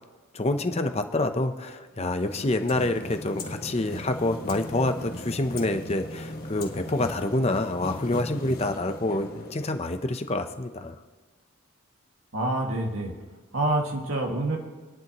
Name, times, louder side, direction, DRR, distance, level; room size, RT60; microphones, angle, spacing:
voice 1, 0.3-10.9, left 2 dB, 30° left, 7 dB, 0.7 m, -27 dB
sound 1, 1.9-10.2, left 1 dB, 45° left, 1.6 m, -39 dB
voice 2, 12.3-13.1 13.5-14.6, right 2 dB, 80° right, 1 dB, 2.1 m, -27 dB
28.0 x 10.5 x 3.0 m, 1.4 s
head